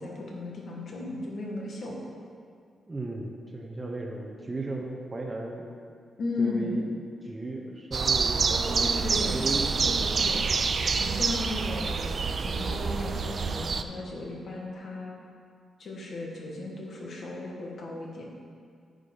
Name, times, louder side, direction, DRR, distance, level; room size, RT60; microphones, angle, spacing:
voice 1, 0.0-1.9 6.2-6.8 8.6-9.4 9.8-10.7 11.0-15.2 15.8-18.3, left 2 dB, 55° left, -2 dB, 1.6 m, -35 dB
voice 2, 2.9-5.6 6.4-6.9 7.2-8.9 9.3-9.9, right 2 dB, 20° right, -1 dB, 0.8 m, -35 dB
sound 1, 7.9-13.8, right 5 dB, 40° right, 0.4 m, -27 dB
9.5 x 5.1 x 5.4 m, 2.2 s
wide cardioid pair, 135°, 0 cm